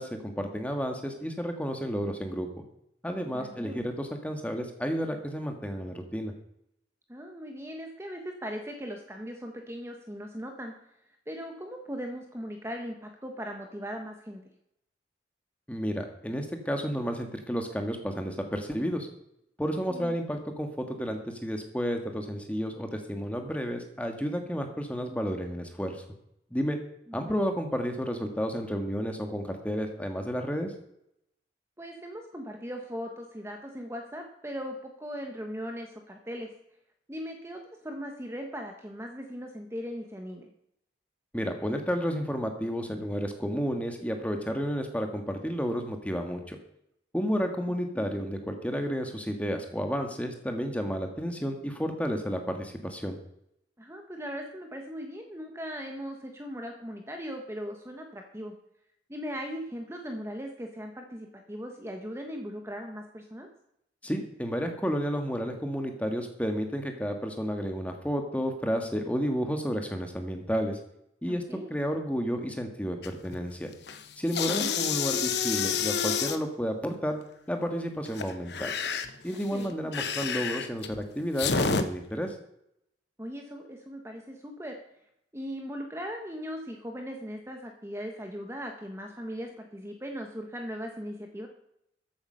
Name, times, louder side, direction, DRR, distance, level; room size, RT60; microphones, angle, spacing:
voice 1, 0.0-2.5 3.0-6.3 15.7-19.1 19.6-26.0 26.5-26.8 27.1-30.7 41.3-46.6 47.1-53.2 64.0-70.8 71.2-73.7 74.2-77.2 77.5-78.7 79.2-82.3, equal, 5° left, 4 dB, 1.6 m, -31 dB
voice 2, 3.3-3.8 7.1-10.7 11.3-14.4 19.9-20.1 27.1-27.4 31.8-36.5 37.1-40.5 47.9-48.1 53.8-58.5 59.1-63.5 71.3-71.7 74.7-74.9 79.3-79.9 83.2-84.8 85.3-91.5, equal, 15° right, 3 dB, 1.1 m, -39 dB
sound 1, 73.0-73.4 73.7-76.4 78.0-81.8, left 6 dB, 60° left, 1.0 m, -29 dB
14.0 x 8.6 x 5.6 m, 0.76 s
head